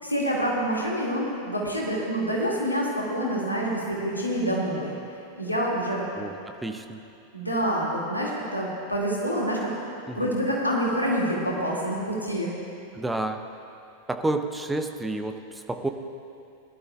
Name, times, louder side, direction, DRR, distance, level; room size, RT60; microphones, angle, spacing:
voice 1, 0.0-4.9 5.4-6.0 7.3-9.7 10.1-12.6, equal, 85° left, -4 dB, 2.3 m, -27 dB
voice 2, 6.2-7.0 10.1-10.3 12.9-13.4 14.1-15.9, right 2 dB, 5° right, 6 dB, 0.7 m, -30 dB
19.5 x 12.0 x 2.4 m, 2.6 s
figure-of-eight pair, 90°, 0 cm